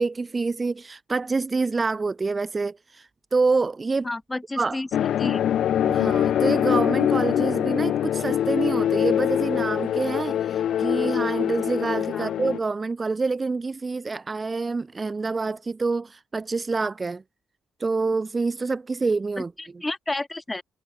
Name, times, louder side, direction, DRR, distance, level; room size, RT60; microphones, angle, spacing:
voice 1, 0.0-4.1 4.6-4.8 5.8-17.2 17.8-19.5, right 3 dB, 25° right, 0.4 m, -27 dB
voice 2, 4.0-4.9 5.2-5.4 12.1-12.3 19.4-20.6, left 2 dB, 15° left, 0.9 m, -31 dB
sound 1, 4.9-12.6, left 10 dB, 70° left, 1.2 m, -23 dB
cardioid pair, 90°, 0 cm